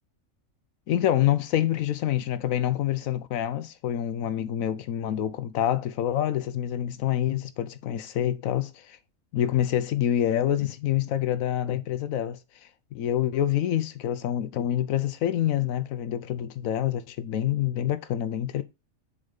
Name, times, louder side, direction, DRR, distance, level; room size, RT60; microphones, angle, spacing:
voice 1, 0.9-9.0 9.3-18.6, left 11 dB, 80° left, 1.0 m, -27 dB
7.0 x 4.0 x 5.2 m
omnidirectional pair, 1.4 m